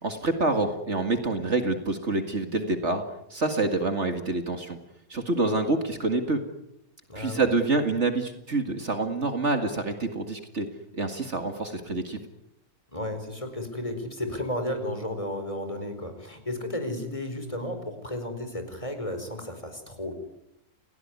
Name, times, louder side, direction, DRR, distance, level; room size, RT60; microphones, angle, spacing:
voice 1, 0.0-3.0 3.3-4.8 5.1-6.4 7.2-10.7 10.9-12.2, right 3 dB, 50° right, 7 dB, 2.3 m, -27 dB
voice 2, 7.1-7.5 12.9-20.1, left 1 dB, 20° left, 7 dB, 4.9 m, -33 dB
30.0 x 17.0 x 9.7 m, 0.83 s
omnidirectional pair, 1.6 m